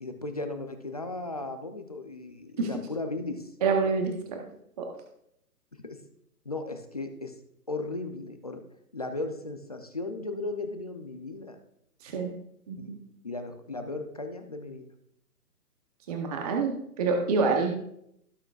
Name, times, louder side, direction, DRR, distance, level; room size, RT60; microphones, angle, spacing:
voice 1, 0.0-3.5 5.8-6.0 6.5-7.3 7.7-8.6 8.9-11.6 12.7-12.9 13.2-14.9, left 2 dB, 25° left, 6 dB, 0.5 m, -36 dB
voice 2, 3.6-4.4 4.8-4.9 12.0-12.3 12.7-13.0 16.1-17.7, right 4 dB, 25° right, 3 dB, 0.8 m, -27 dB
18.0 x 6.5 x 2.4 m, 0.76 s
hypercardioid pair, 150°, 46 cm